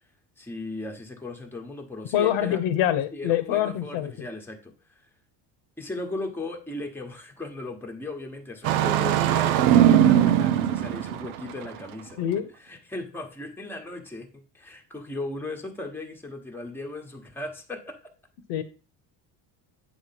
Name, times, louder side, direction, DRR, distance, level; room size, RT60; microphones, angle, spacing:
voice 1, 0.4-2.6 3.1-5.1 5.8-12.2 12.6-18.0, left 2 dB, 5° left, 2 dB, 1.2 m, -37 dB
voice 2, 2.1-4.3 12.2-12.5 18.5-18.6, left 11 dB, 75° left, 11 dB, 1.0 m, -25 dB
Engine starting, 8.6-11.7, right 11 dB, 80° right, 0.7 m, -20 dB
8.7 x 3.1 x 5.9 m, 0.34 s
cardioid pair, 115°, 48 cm